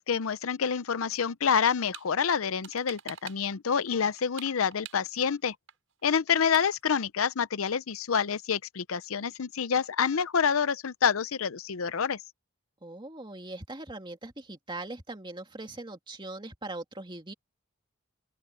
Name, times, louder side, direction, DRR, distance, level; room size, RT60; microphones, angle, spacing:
voice 1, 0.0-5.5 6.0-12.2, left 6 dB, 85° left, 0.6 m, -27 dB
sound 1, 1.6-2.1 2.4-3.6 3.9-5.4 5.7-5.8 6.0-6.1 6.3-6.8, right 9 dB, 70° right, 7.7 m, -45 dB
voice 2, 12.8-17.3, right 2 dB, 25° right, 2.3 m, -40 dB
open air
head